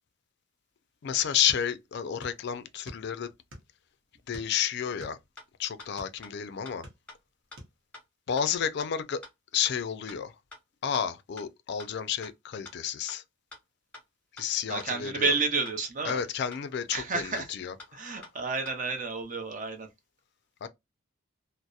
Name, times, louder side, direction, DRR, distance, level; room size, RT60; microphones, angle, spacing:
voice 1, 1.0-3.3 4.3-5.2 5.6-6.8 8.3-9.2 9.5-10.3 10.8-13.2 14.3-15.3 16.0-18.2 20.6-20.7, left 8 dB, 55° left, 0.3 m, -31 dB
sound 1, 1.5-2.4 2.7-3.8 4.3-6.2 6.6-7.3 7.6-7.8, equal, 65° right, 0.9 m, -47 dB
sound 2, 5.0-5.1 5.4-5.5 5.8-5.9 6.2-6.3 6.7-6.8 7.1-7.2 7.5-7.6 7.9-8.0 8.4-8.5 8.8-8.9 9.2-9.3 9.7-9.8 10.1-10.2 10.5-10.6 10.9-11.0 11.4-11.5 11.8-11.9 12.2-12.3 12.7-12.8 13.1-13.2 13.5-13.6 13.9-14.0 14.4-14.5 14.8-14.9 15.2-15.3 15.7-15.8 16.1-16.2 16.5-16.6 16.9-17.0 17.4-17.5 17.8-17.9 18.2-18.3 18.7-18.8, left 2 dB, 5° left, 0.9 m, -46 dB
voice 2, 14.7-16.2 16.9-17.5 17.9-19.9, right 4 dB, 40° right, 0.6 m, -30 dB
2.6 x 2.0 x 2.3 m
head